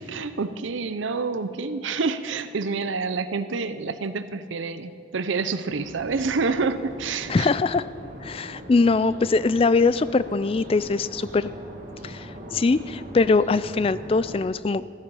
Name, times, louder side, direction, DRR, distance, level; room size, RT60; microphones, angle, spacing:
voice 1, 0.1-7.5, right 4 dB, 75° right, 12 dB, 0.6 m, -28 dB
sound 1, 5.7-14.4, equal, 40° right, 1.9 m, -40 dB
voice 2, 7.3-7.8 8.2-11.5 12.0-14.8, left 3 dB, 30° left, 16 dB, 0.3 m, -22 dB
14.0 x 14.0 x 5.5 m, 2.4 s
head